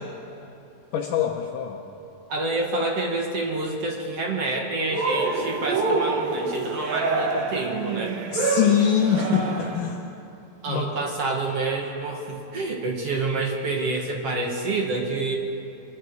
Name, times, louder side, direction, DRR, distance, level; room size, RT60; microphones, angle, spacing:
voice 1, 0.9-1.8 8.3-10.1 10.7-10.8, left 8 dB, 70° left, 1 dB, 2.4 m, -23 dB
voice 2, 2.3-8.2 10.6-15.3, right 2 dB, 50° right, 0 dB, 2.1 m, -28 dB
Cheering, 4.9-9.9, right 3 dB, 75° right, 3.3 m, -26 dB
25.5 x 21.5 x 4.7 m, 2.8 s
omnidirectional pair, 4.1 m